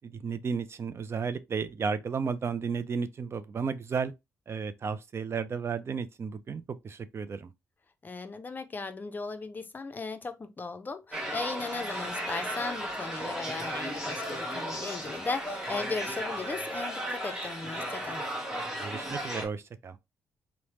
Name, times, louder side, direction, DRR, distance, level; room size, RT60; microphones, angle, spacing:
voice 1, 0.0-4.1 4.5-7.5 18.8-20.0, right 5 dB, 45° right, 0.4 m, -33 dB
voice 2, 8.0-18.2, left 3 dB, 30° left, 0.5 m, -37 dB
sound 1, 11.1-19.5, equal, 10° right, 1.1 m, -35 dB
3.0 x 2.1 x 2.8 m
cardioid pair, 70°, 6 cm